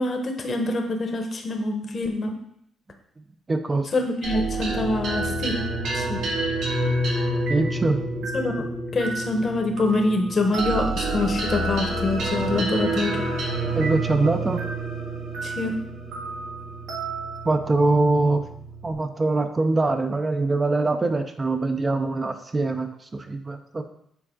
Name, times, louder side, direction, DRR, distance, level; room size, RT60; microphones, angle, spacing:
voice 1, 0.0-2.4 3.9-5.6 5.9-6.3 8.3-13.2 15.4-15.8, left 2 dB, 40° left, 3 dB, 1.0 m, -25 dB
voice 2, 3.5-3.9 7.5-8.0 13.7-14.7 17.5-18.4 18.8-23.8, right 3 dB, 25° right, 6 dB, 0.5 m, -23 dB
sound 1, 4.2-18.9, right 2 dB, 80° right, 1.7 m, -28 dB
7.2 x 3.7 x 3.7 m, 0.72 s
cardioid pair, 90°, 0 cm